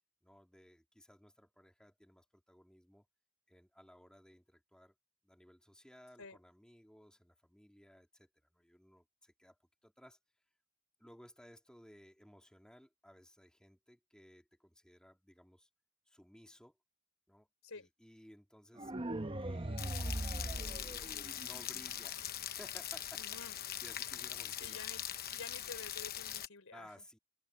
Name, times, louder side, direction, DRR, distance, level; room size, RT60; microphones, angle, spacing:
voice 1, 0.2-3.0 3.5-4.9 5.2-9.6 9.8-10.2 11.0-15.7 16.1-16.8 17.3-17.5 17.7-19.8 20.3-23.2 23.5-24.8 26.7-27.2, equal, 5° left, 2.9 m, -59 dB
sound 1, 18.8-21.8, right 1 dB, 25° right, 0.9 m, -40 dB
Rain, 19.8-26.5, left 11 dB, 45° left, 1.0 m, -42 dB
voice 2, 23.1-23.6 24.6-25.0 25.3-26.9, left 4 dB, 70° left, 3.9 m, -50 dB
head